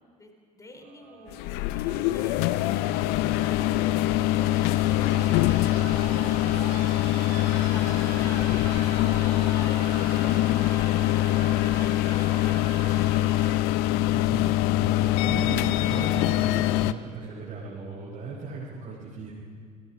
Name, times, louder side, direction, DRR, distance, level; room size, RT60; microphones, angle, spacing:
voice 1, 0.0-13.5, left 1 dB, 15° left, 4 dB, 3.7 m, -47 dB
sound 1, 0.8-14.7 16.0-16.1, right 7 dB, 55° right, 2.7 m, -44 dB
sound 2, 1.3-16.9, left 15 dB, 50° left, 0.7 m, -24 dB
voice 2, 7.5-8.0 14.1-19.3, right 4 dB, 35° right, -6 dB, 4.9 m, -37 dB
28.5 x 21.0 x 5.0 m, 2.1 s
figure-of-eight pair, 70°, 20 cm